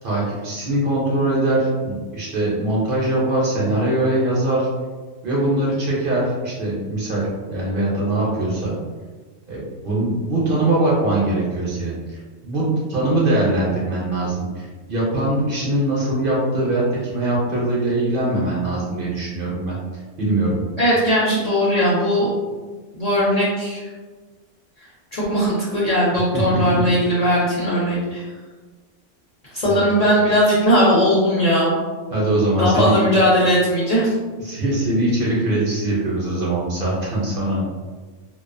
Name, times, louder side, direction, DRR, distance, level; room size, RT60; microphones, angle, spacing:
voice 1, 0.0-4.7 5.2-8.8 9.5-12.0 12.4-19.7 20.2-20.6 26.3-26.8 29.7-29.8 32.1-33.0 34.4-37.6, right 1 dB, 55° right, -6 dB, 0.7 m, -22 dB
voice 2, 20.8-22.3 22.9-23.8 25.1-28.2 29.5-31.8 32.5-34.1, equal, 40° left, -9 dB, 0.6 m, -18 dB
2.4 x 2.2 x 2.4 m, 1.3 s
omnidirectional pair, 1.2 m